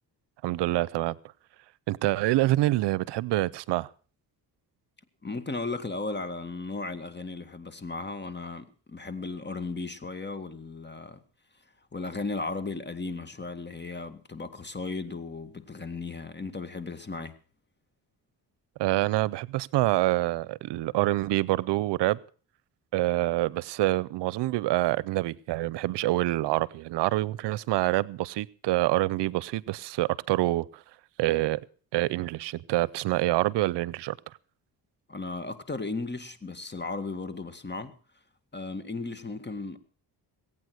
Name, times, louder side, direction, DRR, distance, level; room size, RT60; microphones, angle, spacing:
voice 1, 0.4-1.2 1.9-3.9 18.8-22.2 22.9-30.8 31.2-31.6 31.9-34.2, right 17 dB, 85° right, 0.6 m, -26 dB
voice 2, 5.2-11.2 11.9-17.3 35.1-37.9 38.5-39.8, left 3 dB, 25° left, 2.0 m, -35 dB
20.5 x 8.8 x 6.3 m
cardioid pair, 80°, 41 cm